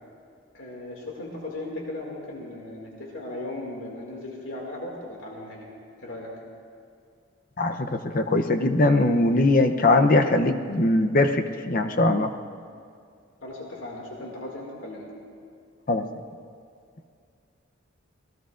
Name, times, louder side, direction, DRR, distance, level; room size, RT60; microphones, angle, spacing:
voice 1, 0.5-5.7 6.0-6.3 13.4-15.1, left 1 dB, 80° left, -2 dB, 2.3 m, -37 dB
voice 2, 7.6-12.3 15.9-16.0, left 2 dB, 45° left, 6 dB, 0.7 m, -21 dB
26.0 x 18.0 x 2.5 m, 2.3 s
head